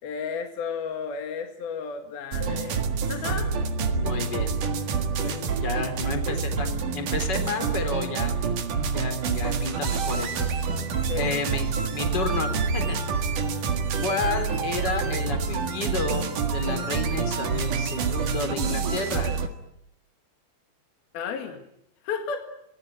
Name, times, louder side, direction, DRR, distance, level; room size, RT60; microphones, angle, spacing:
voice 1, 0.0-2.8 3.1-3.5 11.1-11.4 21.1-21.6 22.0-22.5, left 6 dB, 60° left, 5 dB, 3.6 m, -33 dB
sound 1, 2.3-19.5, right 5 dB, 55° right, 2.8 m, -27 dB
voice 2, 3.9-4.6 5.1-8.4 8.9-10.7 11.2-13.0 14.0-19.4, left 4 dB, 25° left, 6 dB, 3.9 m, -31 dB
28.5 x 20.0 x 9.6 m, 0.78 s
omnidirectional pair, 5.2 m